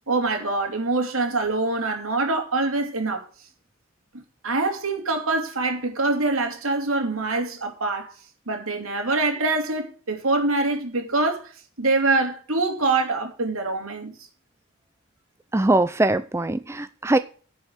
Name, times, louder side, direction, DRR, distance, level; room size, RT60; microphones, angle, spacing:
voice 1, 0.1-3.3 4.1-8.1 8.5-11.5 11.8-14.1, right 3 dB, 80° right, 2.8 m, -24 dB
voice 2, 15.5-17.2, right 2 dB, 15° right, 0.4 m, -21 dB
10.5 x 5.6 x 8.0 m
head